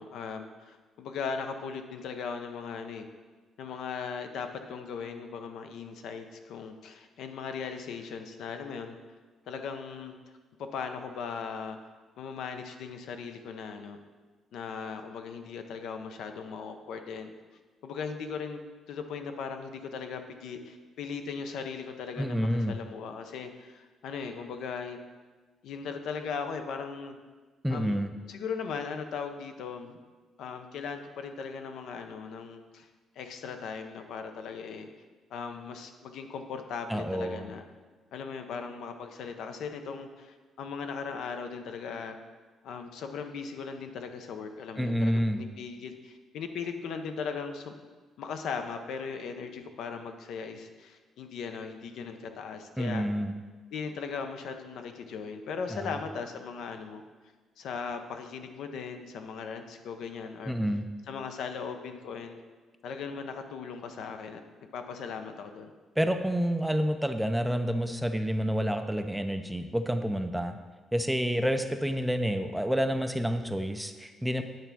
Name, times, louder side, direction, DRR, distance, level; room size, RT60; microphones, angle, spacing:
voice 1, 0.0-3.1 3.6-9.0 9.5-10.2 10.6-11.8 12.2-14.0 14.5-17.3 17.8-18.6 18.9-25.0 25.6-27.2 27.7-28.0 28.3-30.0 30.4-32.9 33.2-34.9 35.3-37.6 38.1-42.2 42.6-47.8 48.2-53.1 53.7-57.0 57.6-60.5 61.1-62.4 62.8-64.4 64.7-65.7, left 5 dB, 75° left, 6 dB, 0.6 m, -38 dB
voice 2, 22.2-22.8 27.6-28.1 36.9-37.5 44.8-45.4 52.8-53.4 55.7-55.9 60.5-60.9 66.0-70.6 70.9-74.4, equal, 5° right, 7 dB, 0.4 m, -29 dB
9.0 x 3.4 x 5.9 m, 1.4 s
cardioid pair, 125°, 0 cm